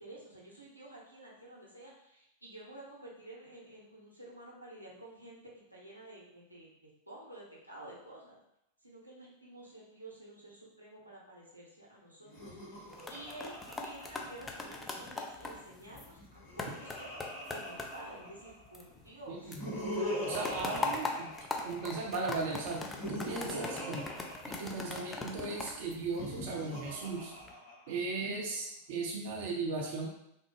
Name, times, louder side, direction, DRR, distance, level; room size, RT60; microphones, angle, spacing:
voice 1, 0.0-8.4 8.8-17.1 17.5-19.6 20.5-21.1, right 1 dB, 90° right, -5 dB, 0.8 m, -51 dB
Laughter, 12.2-15.0 16.1-18.7 19.3-22.1 22.7-25.1 26.0-28.1, equal, 55° left, 1.2 m, -42 dB
sound 1, 12.8-19.2 19.5-26.7 27.2-27.5, left 3 dB, 15° left, 0.4 m, -41 dB
voice 2, 19.3-19.7 20.2-21.3 21.6-22.8 23.1-24.1 24.4-27.3 27.9-30.1, right 3 dB, 50° right, -1 dB, 0.6 m, -37 dB
3.5 x 2.0 x 3.1 m, 0.79 s
figure-of-eight pair, 90°, 0 cm